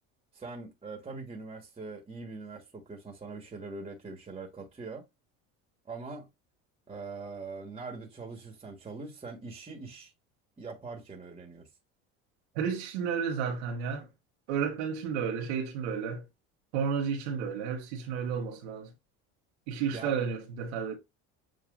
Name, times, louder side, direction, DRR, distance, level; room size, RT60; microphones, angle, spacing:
voice 1, 0.3-5.1 5.8-6.3 6.9-10.1 10.6-11.7 19.9-20.1, right 3 dB, 20° right, 1.3 m, -42 dB
voice 2, 12.5-14.1 14.5-16.2 16.7-18.9 19.7-21.0, right 6 dB, 85° right, 1.1 m, -32 dB
7.4 x 2.5 x 2.4 m
supercardioid pair, 100°, 32 cm